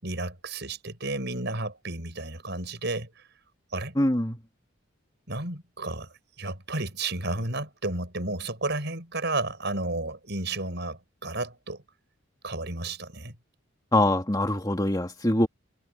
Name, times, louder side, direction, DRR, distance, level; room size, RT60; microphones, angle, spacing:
voice 1, 0.0-3.2 3.7-3.9 5.3-6.1 6.4-11.8 12.4-13.4, right 2 dB, 55° right, 7.6 m, -32 dB
voice 2, 4.0-4.4 13.9-15.5, left 1 dB, 20° left, 2.2 m, -23 dB
head